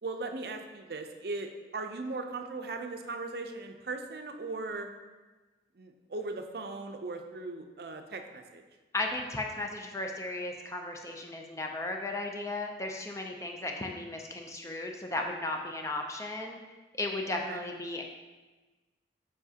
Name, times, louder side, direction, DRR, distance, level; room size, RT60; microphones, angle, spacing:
voice 1, 0.0-4.9 5.8-8.6 17.3-17.6, right 3 dB, 60° right, 5 dB, 0.5 m, -38 dB
voice 2, 8.9-16.6 17.0-18.0, left 2 dB, 15° left, 2 dB, 0.5 m, -35 dB
7.0 x 4.8 x 2.8 m, 1.2 s
head